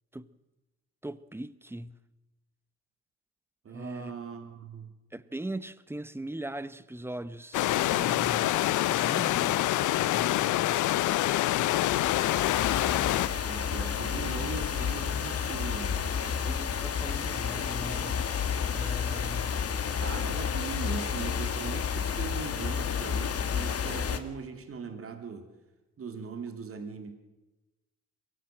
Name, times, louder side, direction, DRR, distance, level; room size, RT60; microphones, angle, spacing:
voice 1, 1.0-2.0 3.7-4.1 5.1-9.6 10.0-10.8 16.4-18.2 18.7-19.5, right 1 dB, 10° right, 1.0 m, -40 dB
voice 2, 3.6-4.9 13.3-16.4 20.0-25.5 26.0-27.1, right 5 dB, 50° right, 3.0 m, -40 dB
sound 1, 7.5-13.3, left 15 dB, 75° left, 0.7 m, -26 dB
sound 2, 11.5-24.2, left 7 dB, 50° left, 1.9 m, -31 dB
23.0 x 16.0 x 7.6 m
cardioid pair, 90°, 30 cm